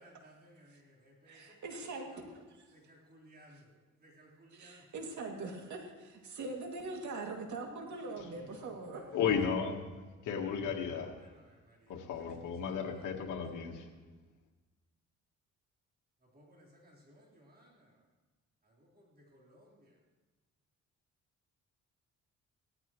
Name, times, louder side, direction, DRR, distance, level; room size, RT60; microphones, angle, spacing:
voice 1, 0.0-1.8 2.1-2.4 2.7-3.7 4.0-4.9 7.8-9.2 11.2-13.4 16.2-18.0 18.6-20.0, equal, 30° right, -4 dB, 3.8 m, -61 dB
voice 2, 1.3-2.1 2.5-2.7 4.5-9.3, right 3 dB, 70° right, 2 dB, 2.4 m, -42 dB
voice 3, 9.1-9.8 10.2-11.1 11.9-13.9, left 6 dB, 80° left, 1 dB, 1.4 m, -34 dB
17.5 x 13.5 x 3.0 m, 1.3 s
cardioid pair, 90°, 30 cm